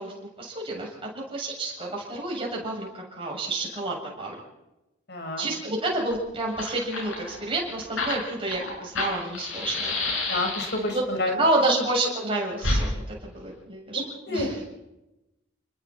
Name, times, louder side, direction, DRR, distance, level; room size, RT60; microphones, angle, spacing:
voice 1, 0.0-4.4 5.4-9.9 10.9-11.0 11.4-14.0 14.3-14.6, right 2 dB, 25° right, -2 dB, 7.6 m, -29 dB
voice 2, 5.1-5.5 10.3-11.4 11.7-11.8 14.3-14.7, left 2 dB, 55° left, 3 dB, 5.6 m, -29 dB
Fire, 6.1-6.2 6.4-11.0 12.6-12.8, left 2 dB, 85° left, 7.8 m, -29 dB
29.0 x 21.0 x 4.6 m, 0.95 s
head